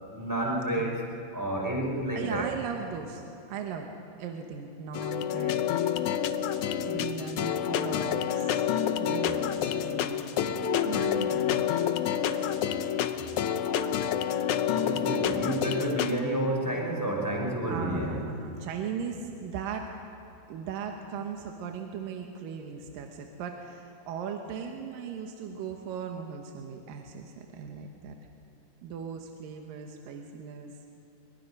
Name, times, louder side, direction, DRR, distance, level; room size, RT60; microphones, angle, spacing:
voice 1, 0.1-1.0 1.3-2.5 14.8-18.2, right 1 dB, 5° right, -1 dB, 3.8 m, -30 dB
voice 2, 2.1-3.9 4.2-5.7 6.8-8.7 9.0-11.9 12.3-12.4 17.7-20.0 20.5-28.2 28.8-30.7, right 6 dB, 80° right, 3 dB, 2.8 m, -38 dB
sound 1, 4.9-16.2, left 9 dB, 70° left, 2.0 m, -28 dB
27.5 x 23.0 x 5.4 m, 3.0 s
omnidirectional pair, 4.0 m